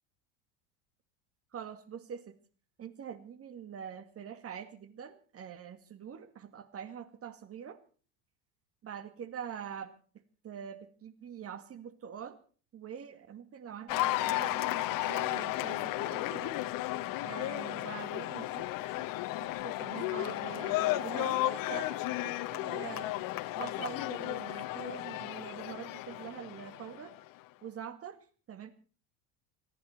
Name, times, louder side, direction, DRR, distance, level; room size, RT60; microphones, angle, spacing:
voice 1, 1.5-2.4 2.8-7.8 8.8-12.4 12.7-16.6 17.2-19.1 19.4-23.2 23.5-27.2 27.6-28.7, right 8 dB, 35° right, 12 dB, 2.0 m, -44 dB
Cheering / Applause, 13.9-27.3, left 17 dB, 55° left, 1.0 m, -34 dB
28.5 x 10.5 x 4.4 m, 0.40 s
supercardioid pair, 105°, 41 cm